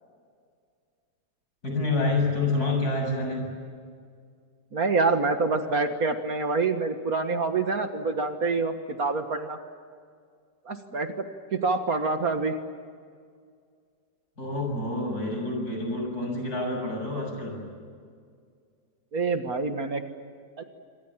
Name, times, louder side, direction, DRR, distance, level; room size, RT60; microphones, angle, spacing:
voice 1, 1.6-3.5 14.4-17.6, left 2 dB, 55° left, 2 dB, 8.0 m, -28 dB
voice 2, 4.7-8.7 9.0-9.6 10.7-11.1 11.5-12.6 19.1-20.0 20.6-20.7, right 3 dB, 55° right, 7 dB, 2.0 m, -26 dB
26.5 x 25.5 x 7.4 m, 2.1 s
omnidirectional pair, 1.9 m